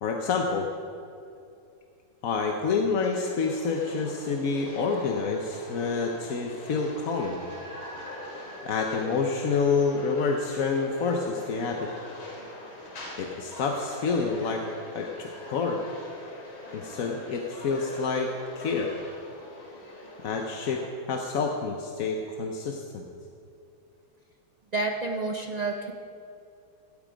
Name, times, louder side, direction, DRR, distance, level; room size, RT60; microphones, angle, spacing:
voice 1, 0.0-0.7 2.2-7.4 8.6-11.9 13.2-14.6 14.9-15.8 16.7-18.3 18.6-18.9 20.2-23.0, left 4 dB, 55° left, 2 dB, 1.1 m, -28 dB
sound 1, 3.0-20.9, left 1 dB, 80° left, 3.4 m, -43 dB
sound 2, 6.9-11.6, right 1 dB, 45° right, 2.3 m, -48 dB
voice 2, 24.7-25.9, right 3 dB, 75° right, 2 dB, 0.3 m, -29 dB
17.0 x 12.5 x 5.2 m, 2.6 s
omnidirectional pair, 2.2 m